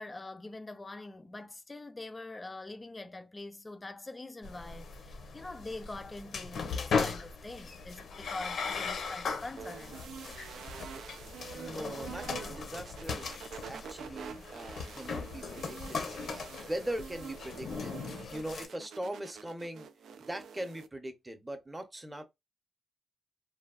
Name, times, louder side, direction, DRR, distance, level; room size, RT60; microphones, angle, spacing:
voice 1, 0.0-10.1, left 2 dB, 25° left, 0.4 m, -44 dB
sound 1, 4.4-18.7, left 5 dB, 70° left, 0.7 m, -38 dB
sound 2, 9.6-20.9, right 6 dB, 85° right, 0.3 m, -47 dB
voice 2, 11.5-13.4 13.7-19.9 20.2-22.2, right 1 dB, 15° right, 0.7 m, -41 dB
3.3 x 2.3 x 2.3 m
cardioid pair, 90°, 0 cm